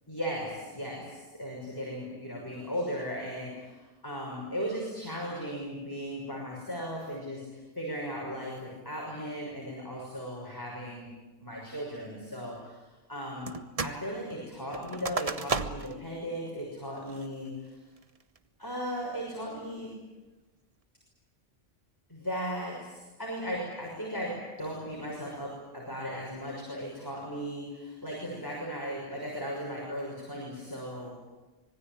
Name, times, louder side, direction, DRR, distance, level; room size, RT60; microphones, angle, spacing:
voice 1, 0.1-3.8 4.0-11.1 11.4-12.8 13.1-13.6 13.8-17.8 18.6-19.9 22.1-31.2, equal, 15° left, -3 dB, 6.3 m, -37 dB
sound 1, 13.5-14.0 14.3-16.0 16.5-16.6 17.1-17.5 18.0-18.4, right 4 dB, 30° right, 0.9 m, -34 dB
25.5 x 20.5 x 9.1 m, 1.1 s
omnidirectional pair, 1.3 m